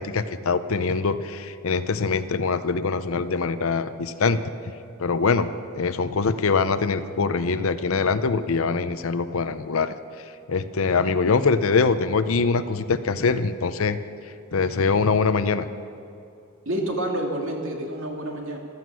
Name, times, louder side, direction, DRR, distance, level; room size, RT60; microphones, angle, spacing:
voice 1, 0.0-4.4 5.0-9.9 10.5-14.0 14.5-15.7, left 4 dB, 70° left, 12 dB, 0.6 m, -23 dB
voice 2, 16.7-18.6, right 1 dB, 60° right, 1 dB, 2.3 m, -28 dB
15.5 x 13.0 x 6.2 m, 2.6 s
head